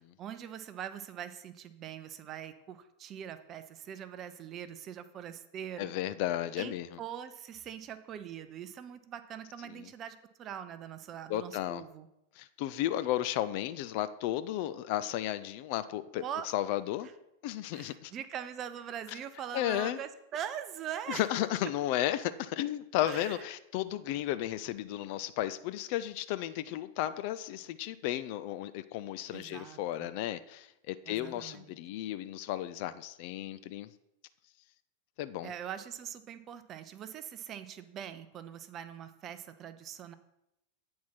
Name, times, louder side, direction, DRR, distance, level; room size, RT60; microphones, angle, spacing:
voice 1, 0.2-5.9 6.6-12.1 16.2-16.5 17.7-21.3 23.0-23.4 29.3-30.1 31.1-31.7 35.4-40.1, right 9 dB, 30° right, 12 dB, 0.6 m, -42 dB
voice 2, 5.8-7.0 9.7-9.9 11.3-11.8 12.4-16.2 16.5-17.1 17.4-18.1 19.5-20.0 21.1-33.9 35.2-35.5, left 13 dB, 45° left, 13 dB, 0.4 m, -34 dB
8.4 x 4.3 x 5.8 m, 0.84 s
figure-of-eight pair, 90°, 0 cm